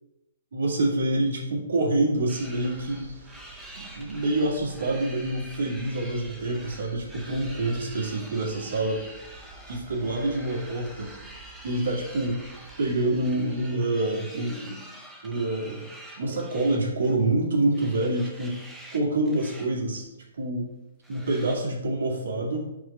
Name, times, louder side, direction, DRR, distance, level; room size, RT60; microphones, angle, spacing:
voice 1, 0.5-3.2 3.8-9.0 9.7-11.2 11.6-12.5 12.8-14.8 15.2-15.9 16.2-18.6 18.9-20.0 20.4-20.7 21.1-22.7, right 2 dB, 80° right, -3 dB, 1.9 m, -27 dB
sound 1, 2.3-17.3 17.7-19.0 19.2-19.7 20.0-20.1 21.0-21.6, right 1 dB, 5° right, 0.6 m, -46 dB
sound 2, 2.3-13.7, right 3 dB, 50° right, 1.6 m, -49 dB
4.5 x 4.2 x 5.5 m, 0.93 s
hypercardioid pair, 170°, 0 cm